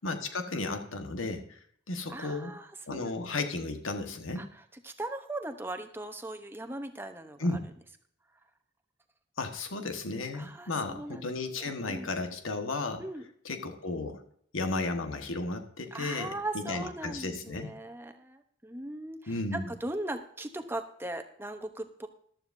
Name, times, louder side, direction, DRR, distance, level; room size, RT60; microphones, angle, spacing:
voice 1, 0.0-1.6 1.9-2.6 2.9-4.5 7.4-7.7 9.4-13.0 13.4-14.2 14.5-17.7 19.3-19.7, left 3 dB, 90° left, 6 dB, 1.4 m, -34 dB
voice 2, 2.1-3.2 4.4-4.5 4.8-7.5 10.3-12.1 13.0-13.2 15.9-22.1, right 2 dB, 10° right, 7 dB, 0.7 m, -39 dB
14.5 x 12.0 x 2.6 m, 0.63 s
head